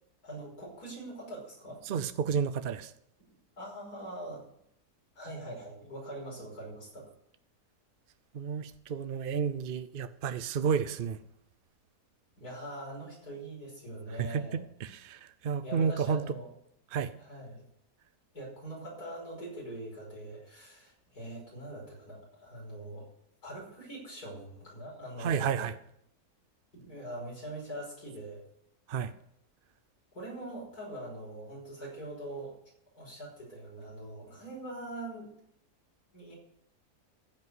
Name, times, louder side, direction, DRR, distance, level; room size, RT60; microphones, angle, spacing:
voice 1, 0.2-1.8 3.6-4.4 5.1-7.1 12.4-14.6 15.6-16.5 17.2-17.6 18.3-23.1 23.4-25.5 26.7-28.4 30.1-32.5 32.9-35.3 36.1-36.3, right 1 dB, 70° left, -2 dB, 6.1 m, -43 dB
voice 2, 1.9-2.9 8.3-11.2 14.2-16.2 16.9-17.1 25.2-25.7 28.9-29.1, right 6 dB, 65° right, 12 dB, 0.5 m, -31 dB
14.5 x 5.5 x 9.6 m, 0.75 s
omnidirectional pair, 1.7 m